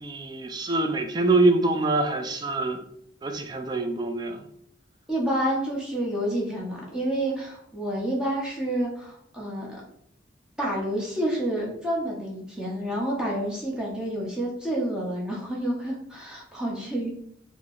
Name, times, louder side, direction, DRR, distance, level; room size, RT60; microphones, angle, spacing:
voice 1, 0.0-2.8 3.2-4.4, right 2 dB, 25° right, 5 dB, 0.4 m, -24 dB
voice 2, 5.1-9.8 10.6-17.1, right 1 dB, 5° right, -4 dB, 0.8 m, -29 dB
3.0 x 2.1 x 3.7 m, 0.69 s
head